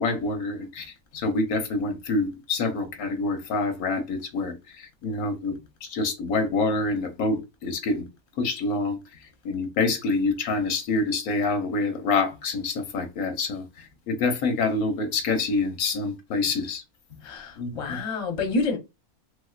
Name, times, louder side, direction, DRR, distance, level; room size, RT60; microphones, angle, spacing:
voice 1, 0.0-5.5 5.8-8.1 8.4-9.0 9.4-16.8 17.6-18.0, left 3 dB, 85° left, 1.2 m, -27 dB
voice 2, 17.1-18.8, left 3 dB, 30° left, 0.7 m, -28 dB
3.4 x 2.9 x 2.3 m
omnidirectional pair, 1.5 m